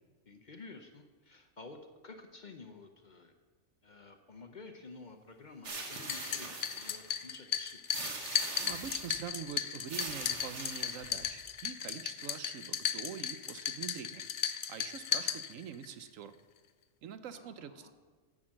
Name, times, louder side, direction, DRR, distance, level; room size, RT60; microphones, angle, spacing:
voice 1, 0.3-1.8 2.0-3.3 3.8-7.8 17.3-17.9, left 3 dB, 40° left, 6 dB, 0.8 m, -51 dB
sound 1, 5.6-7.1 7.9-9.2 9.9-11.3, right 3 dB, 60° right, 1.7 m, -42 dB
sound 2, 5.9-15.9, left 8 dB, 85° left, 0.4 m, -36 dB
voice 2, 8.6-16.3 17.0-17.9, right 8 dB, 80° right, 11 dB, 1.1 m, -45 dB
10.5 x 6.3 x 7.5 m, 1.4 s
omnidirectional pair, 1.4 m